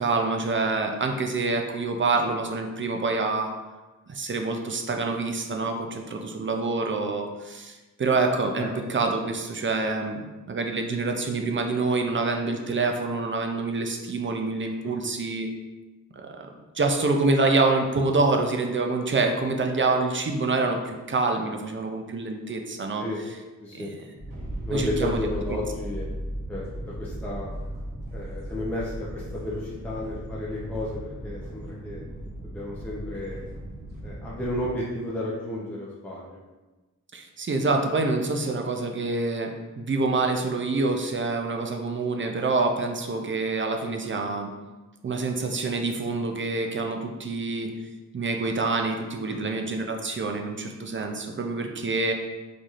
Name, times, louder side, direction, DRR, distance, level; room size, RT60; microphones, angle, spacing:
voice 1, 0.0-3.5 4.1-15.5 16.2-16.5 16.7-23.0 23.7-23.9 24.7-25.3 37.1-44.5 45.0-47.7 48.1-52.1, right 3 dB, 40° right, 3 dB, 0.4 m, -26 dB
sound 1, 24.2-34.8, right 1 dB, 80° right, 0.9 m, -37 dB
voice 2, 24.7-26.1 26.5-27.5 28.1-32.0 32.4-33.4 34.0-36.4 49.3-49.5, left 1 dB, 5° left, -6 dB, 0.6 m, -32 dB
4.1 x 3.1 x 2.4 m, 1.2 s
wide cardioid pair, 105°, 33 cm